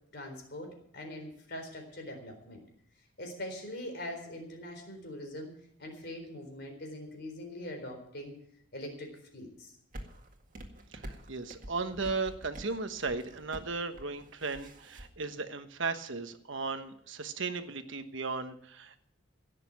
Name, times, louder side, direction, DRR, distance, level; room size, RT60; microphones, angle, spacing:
voice 1, 0.1-2.6 3.2-5.5 5.8-8.4 8.7-9.7, left 1 dB, 50° left, 4 dB, 4.1 m, -42 dB
sound 1, 9.9-15.1, right 1 dB, 40° right, 1.9 m, -47 dB
voice 2, 10.9-19.1, right 4 dB, 65° right, 9 dB, 1.2 m, -36 dB
17.0 x 6.8 x 9.3 m, 0.69 s
head